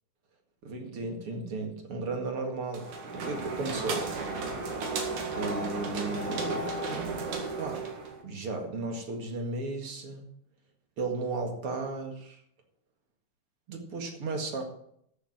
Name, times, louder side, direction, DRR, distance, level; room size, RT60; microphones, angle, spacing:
voice 1, 0.6-2.9 3.1-4.1 5.4-6.7 7.6-7.8 8.2-10.3 11.0-12.4 13.7-14.6, right 3 dB, 50° right, 3 dB, 2.5 m, -34 dB
sound 1, 2.7-8.2, right 3 dB, 65° right, 3.4 m, -34 dB
14.0 x 7.0 x 5.9 m, 0.70 s
omnidirectional pair, 3.7 m